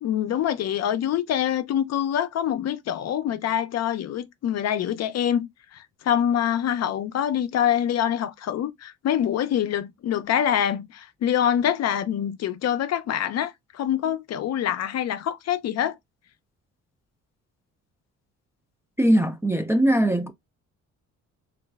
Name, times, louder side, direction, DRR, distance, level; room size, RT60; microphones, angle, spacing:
voice 1, 0.0-5.5 5.7-16.0, left 10 dB, 60° left, 0.5 m, -25 dB
voice 2, 19.0-20.3, right 1 dB, 10° right, 0.3 m, -20 dB
3.0 x 2.5 x 2.3 m
cardioid pair, 90°, 30 cm